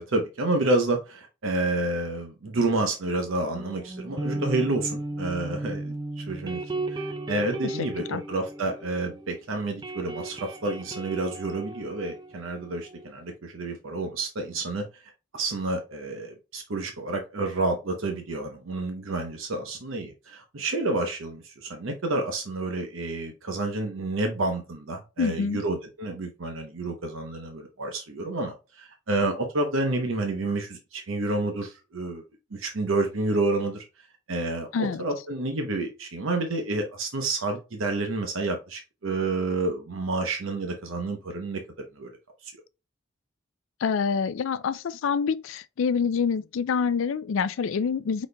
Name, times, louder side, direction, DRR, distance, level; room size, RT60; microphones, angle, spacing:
voice 1, 0.0-6.6 6.9-14.8 15.3-32.2 32.5-33.8 34.3-41.6 42.0-42.1 42.4-42.5, right 2 dB, 75° right, 0.8 m, -29 dB
sound 1, 3.5-9.3 9.6-13.1, right 2 dB, 20° right, 0.4 m, -35 dB
voice 2, 7.6-8.2 25.2-25.6 34.7-35.0 43.8-48.3, left 6 dB, 70° left, 0.4 m, -26 dB
5.0 x 4.1 x 2.2 m
head